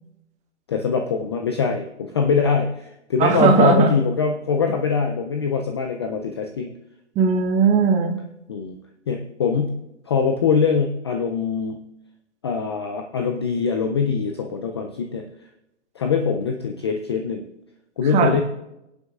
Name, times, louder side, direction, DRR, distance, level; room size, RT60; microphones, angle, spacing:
voice 1, 0.7-6.7 8.5-8.8 9.1-9.8 10.1-11.8 12.4-15.2 16.0-17.5 18.0-18.4, left 5 dB, 25° left, 4 dB, 0.3 m, -23 dB
voice 2, 3.2-3.9 7.1-8.2 18.1-18.4, right 5 dB, 20° right, 5 dB, 1.0 m, -18 dB
19.5 x 8.0 x 2.4 m, 0.86 s
hypercardioid pair, 140°, 36 cm